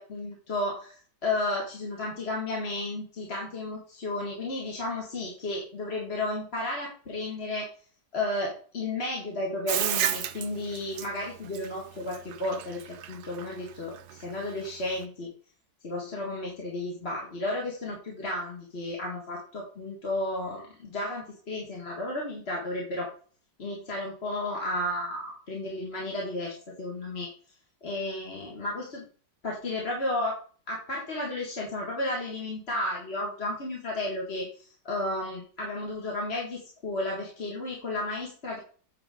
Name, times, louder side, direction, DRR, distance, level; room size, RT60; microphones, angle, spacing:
voice 1, 0.0-7.7 8.1-15.3 15.8-23.1 23.6-27.3 27.8-29.0 29.4-30.4 30.7-38.6, left 2 dB, 35° left, -3 dB, 2.0 m, -33 dB
Bathtub (filling or washing), 9.7-15.0, right 10 dB, 70° right, 1.2 m, -32 dB
8.9 x 6.1 x 3.7 m, 0.41 s
omnidirectional pair, 1.9 m